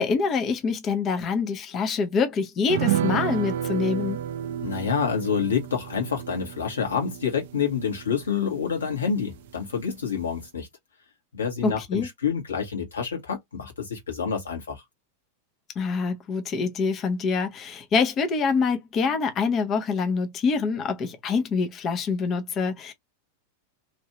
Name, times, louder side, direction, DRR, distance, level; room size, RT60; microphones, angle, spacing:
voice 1, 0.0-4.2 11.6-12.1 15.8-22.9, left 5 dB, 30° left, 0.7 m, -25 dB
sound 1, 2.7-9.5 9.8-9.9 10.2-10.4, right 11 dB, 55° right, 0.4 m, -31 dB
voice 2, 4.6-10.7 11.3-14.8, left 6 dB, 70° left, 1.4 m, -28 dB
3.0 x 2.7 x 2.9 m
figure-of-eight pair, 90°, 0 cm